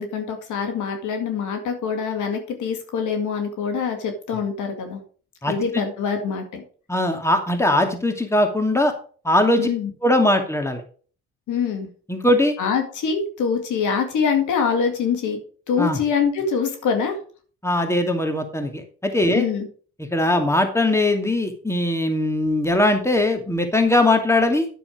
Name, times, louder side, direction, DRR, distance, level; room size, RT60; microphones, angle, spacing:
voice 1, 0.0-5.0 5.5-6.6 9.6-9.9 11.5-11.9 12.6-15.4 15.7-17.2 19.3-19.7, left 6 dB, 70° left, 4 dB, 2.2 m, -24 dB
voice 2, 5.4-5.8 6.9-8.9 9.2-9.7 10.0-10.8 12.1-12.5 15.8-16.0 17.6-19.5 20.0-24.7, left 1 dB, 10° left, 5 dB, 2.4 m, -20 dB
9.4 x 7.0 x 5.1 m, 0.42 s
supercardioid pair, 55°, 31 cm